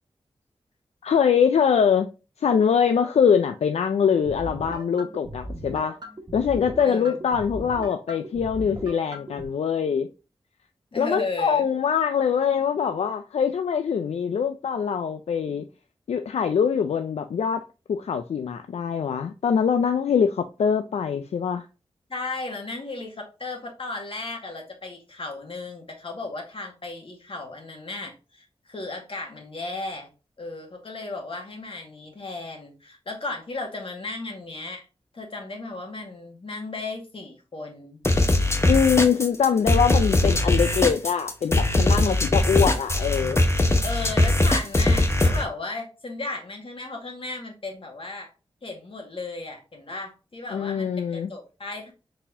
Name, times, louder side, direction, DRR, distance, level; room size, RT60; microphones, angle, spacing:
voice 1, 1.0-2.1 2.4-6.0 6.3-10.1 11.0-15.7 16.1-17.6 17.9-21.7 38.7-43.4 50.5-51.3, left 7 dB, 80° left, 0.4 m, -23 dB
sound 1, 4.3-9.4, right 1 dB, 40° right, 1.3 m, -38 dB
voice 2, 6.8-7.1 10.9-11.7 22.1-30.1 30.4-34.8 35.1-38.0 43.8-48.3 48.6-51.9, left 3 dB, 55° left, 1.7 m, -35 dB
sound 2, 38.0-45.4, left 2 dB, 25° left, 0.9 m, -21 dB
4.2 x 4.2 x 2.7 m
cardioid pair, 50°, 11 cm